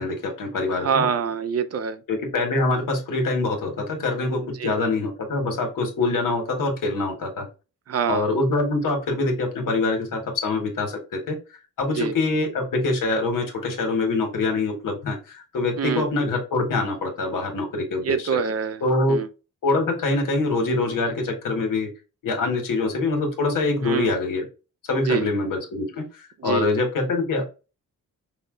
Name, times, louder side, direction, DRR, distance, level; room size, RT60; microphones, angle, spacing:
voice 1, 0.0-1.1 2.1-7.5 8.1-11.4 11.8-18.4 18.8-19.2 19.6-21.9 22.2-24.4 24.9-27.5, left 3 dB, 85° left, 1.5 m, -24 dB
voice 2, 0.8-2.0 4.6-4.7 7.9-8.3 11.9-12.1 15.8-16.1 18.1-18.8 19.1-19.3 23.9-24.1 25.1-25.3 26.4-26.7, right 6 dB, 50° right, 0.6 m, -25 dB
5.6 x 2.3 x 3.7 m
wide cardioid pair, 115°, 31 cm